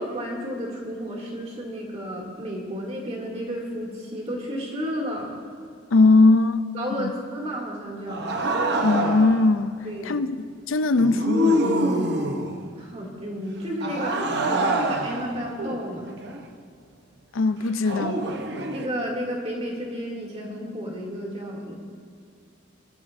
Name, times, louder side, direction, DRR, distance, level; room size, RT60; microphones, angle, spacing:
voice 1, 0.0-5.4 6.7-8.3 9.8-10.2 12.8-16.1 18.7-21.7, equal, 30° right, 2.6 m, -32 dB
voice 2, 5.9-6.6 6.9-7.1 8.8-10.4 10.7-11.9 17.3-18.3, left 3 dB, 80° left, 0.5 m, -20 dB
sound 1, 8.1-9.5 11.0-12.7 13.8-16.5 17.9-18.9, right 1 dB, 55° right, 0.9 m, -26 dB
23.0 x 12.5 x 2.6 m
head